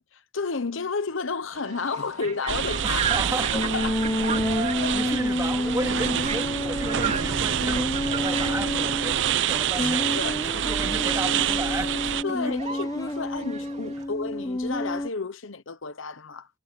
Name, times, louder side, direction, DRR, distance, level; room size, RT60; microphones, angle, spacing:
voice 1, 0.1-3.0 3.4-4.0 4.6-5.0 9.7-10.4 12.2-16.5, left 4 dB, 80° left, 1.0 m, -32 dB
sound 1, 1.5-14.0, right 6 dB, 35° right, 3.5 m, -37 dB
sound 2, 2.5-12.2, right 9 dB, 65° right, 0.6 m, -27 dB
voice 2, 2.8-3.5 4.3-12.0 12.4-12.5, right 1 dB, 15° right, 2.2 m, -34 dB
sound 3, 3.5-9.2 9.8-15.1, left 1 dB, 15° left, 0.9 m, -29 dB
head